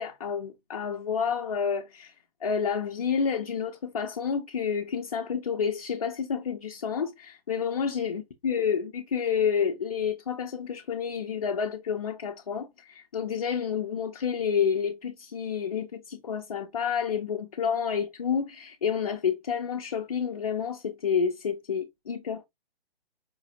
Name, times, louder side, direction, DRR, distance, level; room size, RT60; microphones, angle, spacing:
voice 1, 0.0-2.1 2.4-22.5, left 7 dB, 40° left, 0.4 m, -29 dB
4.9 x 2.4 x 2.7 m
figure-of-eight pair, 140°, 31 cm